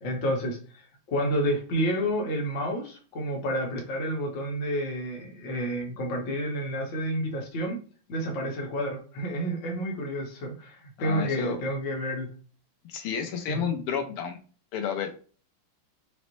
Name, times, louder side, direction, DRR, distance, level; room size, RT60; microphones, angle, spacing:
voice 1, 0.0-7.8 8.1-12.3 13.5-13.7, equal, 50° left, 1.0 m, -30 dB
voice 2, 11.0-11.6 12.9-14.4 14.7-15.1, left 7 dB, 85° left, 1.6 m, -31 dB
5.1 x 2.1 x 3.0 m
omnidirectional pair, 2.4 m